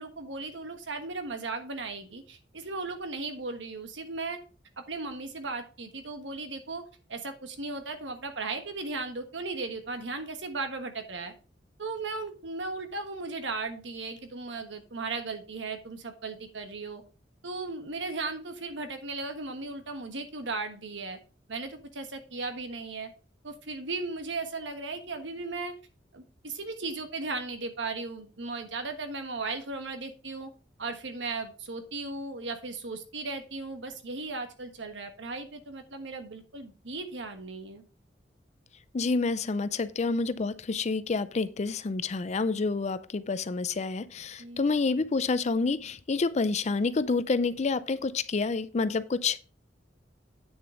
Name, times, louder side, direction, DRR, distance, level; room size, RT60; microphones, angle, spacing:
voice 1, 0.0-4.4 4.8-6.8 7.1-11.3 11.8-17.0 17.4-21.2 21.5-23.1 23.4-25.7 26.1-30.5 30.8-37.8 44.4-44.6, right 3 dB, 85° right, 1.3 m, -36 dB
voice 2, 38.9-49.4, left 4 dB, 40° left, 0.5 m, -28 dB
8.8 x 6.6 x 3.8 m
head